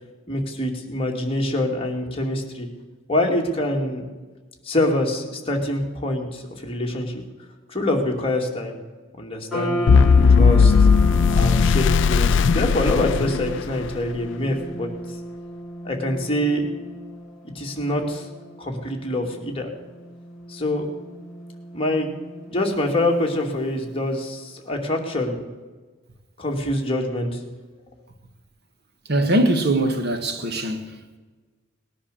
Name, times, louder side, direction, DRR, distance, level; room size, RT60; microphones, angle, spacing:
voice 1, 0.3-2.7 3.1-4.0 4.6-7.2 7.7-8.8 9.2-10.1 10.4-10.9 11.4-14.9 15.8-16.7 17.5-18.3 18.6-19.7 20.5-20.9 21.7-22.1 22.5-25.4 26.4-27.4, left 1 dB, 30° left, 2.4 m, -25 dB
sound 1, 9.5-23.9, equal, ahead, 7.2 m, -35 dB
sound 2, 9.9-14.0, left 5 dB, 65° left, 0.4 m, -16 dB
voice 2, 29.1-31.0, right 1 dB, 55° right, 1.5 m, -21 dB
19.5 x 10.5 x 6.9 m
head